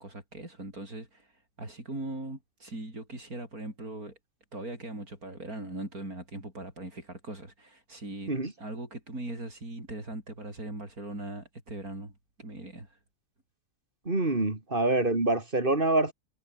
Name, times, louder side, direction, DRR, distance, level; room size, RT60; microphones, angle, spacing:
voice 1, 0.0-4.2 4.5-8.3 8.6-13.0, right 2 dB, 85° right, 7.5 m, -40 dB
voice 2, 14.0-16.1, right 2 dB, 35° right, 3.3 m, -26 dB
omnidirectional pair, 1.5 m